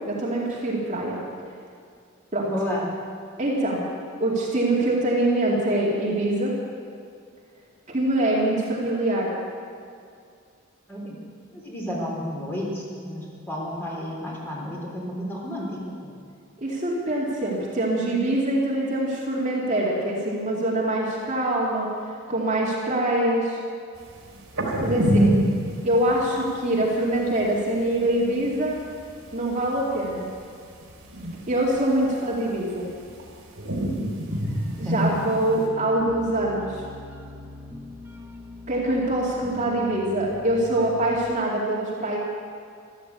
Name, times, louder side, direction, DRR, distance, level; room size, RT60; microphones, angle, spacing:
voice 1, 0.1-1.2 2.3-2.5 3.4-3.9 4.2-6.5 7.9-9.3 16.6-21.9 22.3-23.6 24.8-25.4 25.8-28.8 29.3-30.2 31.5-32.9 34.8-36.8 38.7-42.2, right 1 dB, 35° right, -4 dB, 2.4 m, -24 dB
voice 2, 2.5-2.9 10.9-11.2 11.5-16.1 34.8-35.0, equal, 10° left, -4 dB, 3.6 m, -31 dB
sound 1, 24.3-26.7 26.9-27.0 27.3-27.6 28.0-28.5 28.8-30.1 30.5-31.5 31.8-33.3 33.6-35.6, right 1 dB, 85° right, 3.4 m, -26 dB
sound 2, 34.3-41.1, left 1 dB, 10° right, 1.1 m, -41 dB
13.5 x 13.0 x 8.2 m, 2.3 s
head